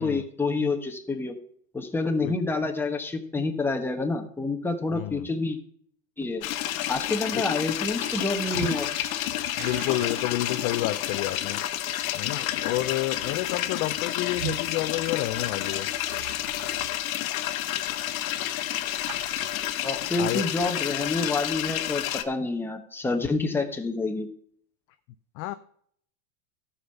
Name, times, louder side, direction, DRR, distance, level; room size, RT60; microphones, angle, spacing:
voice 1, 0.0-1.4 1.7-5.6 6.2-6.4 6.9-8.9 19.8-24.3, left 3 dB, 5° left, 4 dB, 1.1 m, -28 dB
voice 2, 4.9-5.3 7.3-7.4 9.6-11.6 12.1-15.9 20.2-20.5 25.4-25.5, left 16 dB, 35° left, 11 dB, 0.4 m, -30 dB
sound 1, 6.4-22.2, left 12 dB, 75° left, 1.1 m, -30 dB
sound 2, 7.6-17.5 17.8-18.1 18.4-20.0, right 12 dB, 50° right, 1.0 m, -43 dB
13.0 x 5.6 x 5.7 m, 0.62 s
supercardioid pair, 140°, 41 cm